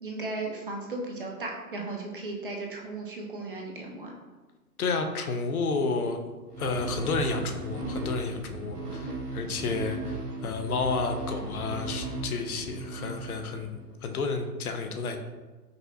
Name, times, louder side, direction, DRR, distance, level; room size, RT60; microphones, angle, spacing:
voice 1, 0.0-4.1, right 2 dB, 40° right, 0 dB, 0.4 m, -36 dB
voice 2, 4.8-6.2 6.6-15.2, left 4 dB, 65° left, 5 dB, 0.6 m, -31 dB
sound 1, 6.5-13.9, right 2 dB, 75° right, 0.9 m, -36 dB
5.1 x 2.0 x 2.6 m, 1.2 s
figure-of-eight pair, 120°, 47 cm